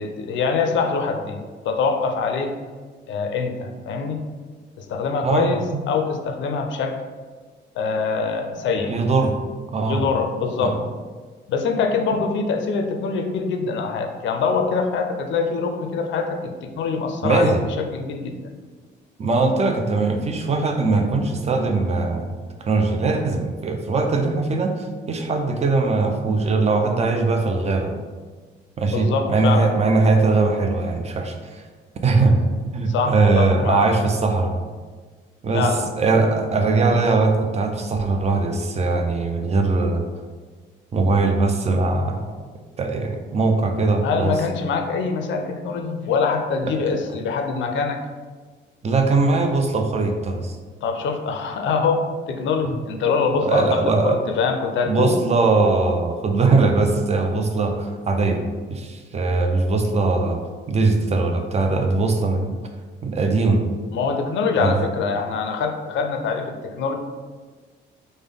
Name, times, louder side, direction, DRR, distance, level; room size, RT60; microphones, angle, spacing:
voice 1, 0.0-2.6 3.1-4.2 4.8-7.0 7.8-9.0 9.8-10.8 11.5-18.4 28.9-29.7 32.9-33.9 35.5-35.9 44.0-48.0 50.8-55.2 63.9-66.9, left 5 dB, 70° left, 5 dB, 0.4 m, -24 dB
voice 2, 5.2-5.8 8.8-9.3 9.7-10.0 10.6-10.8 12.1-12.2 17.2-17.6 19.2-22.4 22.6-27.9 28.8-31.6 32.0-32.4 32.7-34.5 35.4-35.7 36.0-40.0 40.9-42.2 42.8-44.3 46.6-46.8 48.8-50.6 53.4-54.2 54.9-60.4 60.7-62.6 63.0-63.6 64.6-64.8, right 3 dB, 35° right, 4 dB, 0.5 m, -20 dB
3.5 x 2.1 x 3.5 m, 1.5 s
cardioid pair, 90°, 20 cm